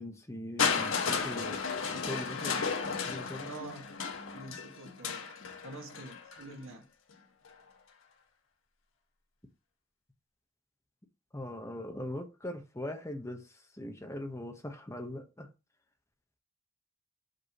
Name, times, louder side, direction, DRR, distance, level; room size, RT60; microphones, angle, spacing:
voice 1, 0.0-3.5 11.3-13.4 13.8-15.5, left 1 dB, 15° left, 0.9 m, -41 dB
Crushing, 0.6-6.5 7.4-7.5, left 5 dB, 85° left, 1.1 m, -34 dB
voice 2, 3.4-4.0 4.3-5.2 5.6-6.9, right 2 dB, 80° right, 1.5 m, -46 dB
6.2 x 5.2 x 2.9 m
head